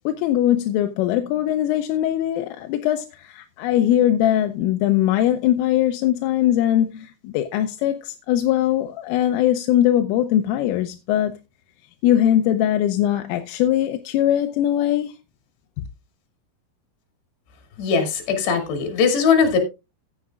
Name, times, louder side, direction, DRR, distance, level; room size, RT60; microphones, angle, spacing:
voice 1, 0.1-11.3 12.0-15.2 15.8-15.9, left 12 dB, 85° left, 3.3 m, -21 dB
voice 2, 17.8-19.6, left 5 dB, 65° left, 4.4 m, -20 dB
15.0 x 9.9 x 2.4 m
omnidirectional pair, 5.7 m